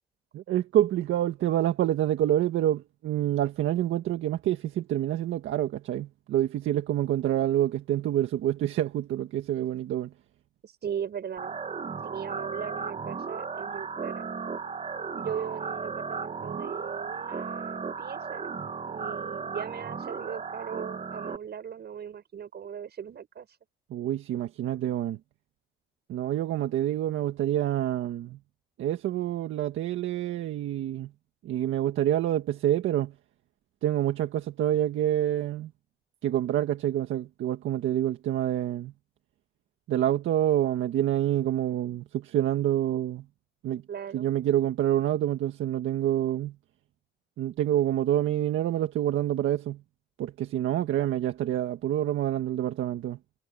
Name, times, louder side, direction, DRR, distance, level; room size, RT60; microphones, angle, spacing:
voice 1, 0.3-10.1 23.9-25.2 26.1-28.4 28.8-31.1 31.4-33.1 33.8-35.7 36.2-38.9 39.9-43.3 43.6-43.8 44.1-46.6 47.4-49.8 50.2-53.2, right 12 dB, 80° right, 1.7 m, -27 dB
voice 2, 10.6-11.6 12.0-14.3 15.1-18.5 18.9-23.5 43.9-44.3, right 8 dB, 55° right, 6.9 m, -38 dB
sound 1, 11.4-21.4, right 5 dB, 35° right, 1.4 m, -35 dB
cardioid pair, 90°, 20 cm